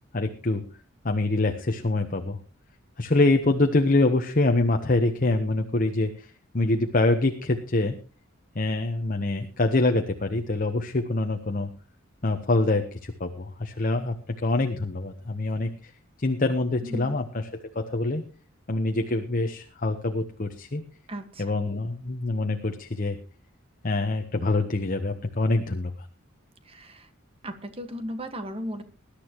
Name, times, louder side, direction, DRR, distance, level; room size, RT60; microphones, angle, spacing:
voice 1, 0.1-0.7 1.0-2.4 3.0-6.3 6.5-8.0 8.5-11.7 12.2-14.2 14.4-15.7 16.2-18.2 18.7-20.8 21.4-23.2 23.8-25.9, left 2 dB, 40° left, 6 dB, 1.0 m, -25 dB
voice 2, 16.8-17.2 21.1-21.5 26.6-27.1 27.4-28.8, equal, 30° right, 8 dB, 1.5 m, -36 dB
20.5 x 11.5 x 3.0 m, 0.35 s
head